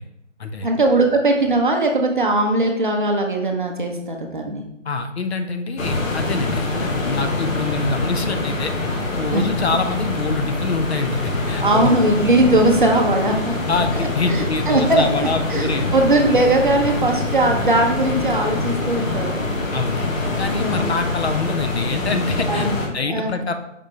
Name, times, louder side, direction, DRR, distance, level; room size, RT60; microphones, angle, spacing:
voice 1, 0.6-4.6 9.3-9.5 11.6-13.5 14.3-19.4 20.6-20.9 22.5-23.3, right 2 dB, 40° right, 2 dB, 0.5 m, -19 dB
voice 2, 4.8-8.7 9.1-12.0 13.7-15.9 19.7-22.7 22.9-23.6, left 4 dB, 55° left, 7 dB, 0.5 m, -25 dB
sound 1, 5.8-22.9, left 2 dB, 90° left, 1.1 m, -24 dB
5.1 x 3.3 x 2.8 m, 0.80 s
figure-of-eight pair, 155°, 39 cm